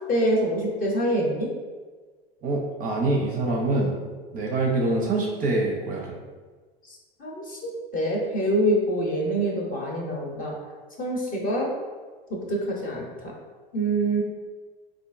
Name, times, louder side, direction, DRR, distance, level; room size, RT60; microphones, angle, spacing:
voice 1, 0.1-1.5 6.9-7.6 7.9-10.5 11.0-11.7 12.3-13.3 13.7-14.2, right 1 dB, 30° left, -2 dB, 0.8 m, -25 dB
voice 2, 2.4-3.9 4.3-6.2, right 2 dB, 30° right, -1 dB, 0.5 m, -25 dB
3.6 x 2.5 x 2.5 m, 1.4 s
hypercardioid pair, 85°, 30 cm